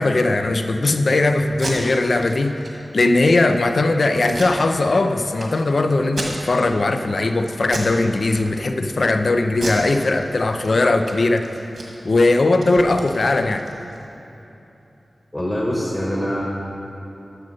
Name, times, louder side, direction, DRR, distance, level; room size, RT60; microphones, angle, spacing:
voice 1, 0.0-2.6 2.9-11.4 12.0-13.6, left 2 dB, 65° left, 7 dB, 0.5 m, -19 dB
Packing tape duct tape, 1.5-1.7 2.2-2.3 2.6-2.7 3.1-3.5 4.2-5.0 5.4-5.5 6.0-6.7 7.1-7.3 7.7-8.0 8.3-8.9 9.5-10.7 11.0-11.1 11.4-14.0, right 2 dB, 75° right, 1.7 m, -33 dB
voice 2, 15.3-16.4, equal, 25° left, -2 dB, 1.2 m, -24 dB
13.0 x 6.3 x 4.3 m, 3.0 s
cardioid pair, 50°, 0 cm